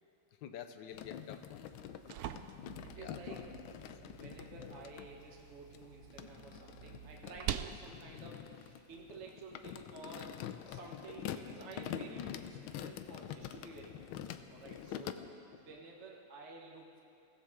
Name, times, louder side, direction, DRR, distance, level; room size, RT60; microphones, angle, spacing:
voice 1, 0.4-1.7 3.0-3.5 3.9-4.0 15.2-15.3 15.7-15.8, left 9 dB, 70° left, 9 dB, 1.4 m, -49 dB
sound 1, 0.9-5.1 5.7-15.1, left 10 dB, 90° left, 1.5 m, -46 dB
sound 2, 1.7-9.6, right 10 dB, 75° right, 0.8 m, -46 dB
voice 2, 2.8-3.4 3.7-3.8 4.1-10.4 10.7-14.1 14.5-15.2 15.6-17.0, right 3 dB, 40° right, -1 dB, 1.5 m, -52 dB
22.5 x 16.5 x 3.7 m, 2.7 s
omnidirectional pair, 2.2 m